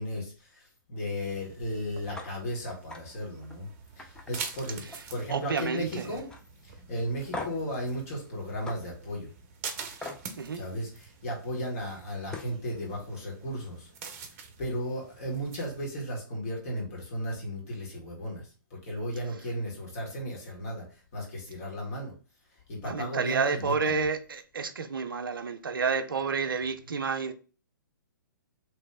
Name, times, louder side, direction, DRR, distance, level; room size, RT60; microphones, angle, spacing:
voice 1, 0.0-3.7 4.0-6.3 6.6-9.3 10.5-13.9 14.6-20.8 21.1-22.1 22.7-24.0, equal, 45° left, 2.0 m, -35 dB
sound 1, 1.2-15.9, right 5 dB, 40° right, 0.7 m, -46 dB
sound 2, 2.1-2.3 2.7-3.0 3.4-3.6 4.0-5.2 5.5-5.9 6.3-6.4 7.3-7.7 8.7-8.8 10.0-10.2 11.9-12.0 12.3-12.6, left 2 dB, 5° left, 0.4 m, -40 dB
voice 2, 5.3-6.1 10.3-10.6 22.8-27.3, right 5 dB, 75° right, 0.5 m, -30 dB
3.2 x 3.0 x 3.4 m
figure-of-eight pair, 125°, 11 cm